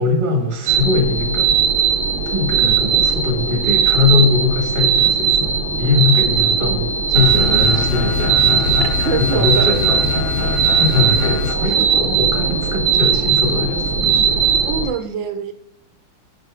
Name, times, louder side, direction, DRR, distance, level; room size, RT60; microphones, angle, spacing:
voice 1, 0.0-1.5 2.3-8.9 9.2-14.5, left 3 dB, 25° right, 2 dB, 1.7 m, -21 dB
sound 1, 0.7-14.9, right 7 dB, 90° right, 1.8 m, -18 dB
sound 2, 7.1-11.5, left 7 dB, 80° left, 0.6 m, -24 dB
voice 2, 8.8-9.8 10.1-10.3 11.6-11.7 14.7-15.5, right 6 dB, 75° right, 8 dB, 1.6 m, -25 dB
11.0 x 4.9 x 3.6 m, 0.72 s
omnidirectional pair, 2.1 m